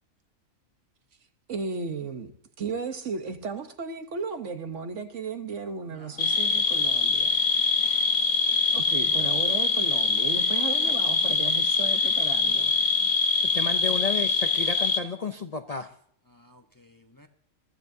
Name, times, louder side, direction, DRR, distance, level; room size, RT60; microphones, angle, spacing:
voice 1, 1.5-2.3 2.6-7.4 8.7-12.7, right 5 dB, 60° right, 1.4 m, -35 dB
voice 2, 5.9-6.6 12.4-12.9 16.3-17.3, equal, 20° left, 0.8 m, -53 dB
sound 1, 6.2-15.0, left 4 dB, 75° left, 1.5 m, -24 dB
voice 3, 13.4-15.9, left 4 dB, 40° left, 0.6 m, -32 dB
22.0 x 14.0 x 2.7 m
omnidirectional pair, 1.4 m